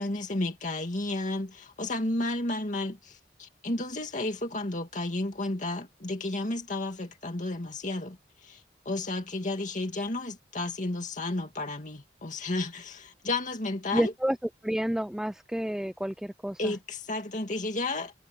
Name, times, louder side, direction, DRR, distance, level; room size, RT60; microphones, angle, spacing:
voice 1, 0.0-14.1 16.6-18.1, left 2 dB, 45° left, 2.3 m, -32 dB
voice 2, 13.9-14.4 14.6-16.7, equal, 5° right, 0.4 m, -29 dB
head